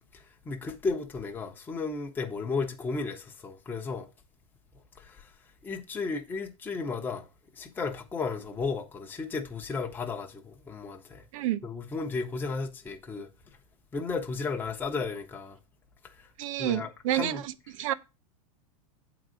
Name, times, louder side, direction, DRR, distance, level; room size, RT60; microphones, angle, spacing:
voice 1, 0.1-4.1 5.0-5.3 5.6-7.3 7.5-11.3 11.6-13.3 13.9-15.6 16.0-16.3 16.6-17.4, left 4 dB, 10° left, 0.8 m, -34 dB
voice 2, 16.4-17.9, right 13 dB, 65° right, 0.7 m, -29 dB
8.5 x 3.9 x 6.2 m
supercardioid pair, 155°, 18 cm